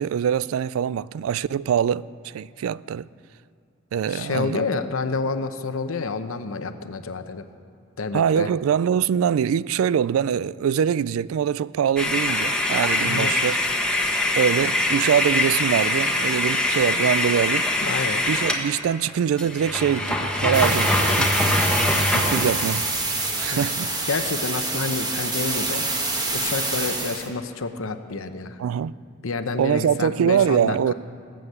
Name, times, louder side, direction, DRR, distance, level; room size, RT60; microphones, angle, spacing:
voice 1, 0.0-3.1 3.9-4.6 8.1-13.6 14.4-17.7 18.3-21.8 22.1-22.8 23.4-23.9 28.6-28.9 29.6-30.9, right 8 dB, 85° right, 0.3 m, -23 dB
voice 2, 4.1-7.4 8.0-8.5 13.0-13.3 17.8-18.2 22.4-22.5 23.5-23.7 24.1-25.9 26.3-28.6 29.2-30.9, left 4 dB, 80° left, 0.8 m, -29 dB
sound 1, 12.0-18.6 19.1-19.2 19.4-23.5, left 1 dB, 5° left, 1.3 m, -23 dB
sound 2, 20.5-27.3, right 2 dB, 20° right, 1.5 m, -27 dB
18.5 x 7.8 x 8.0 m
head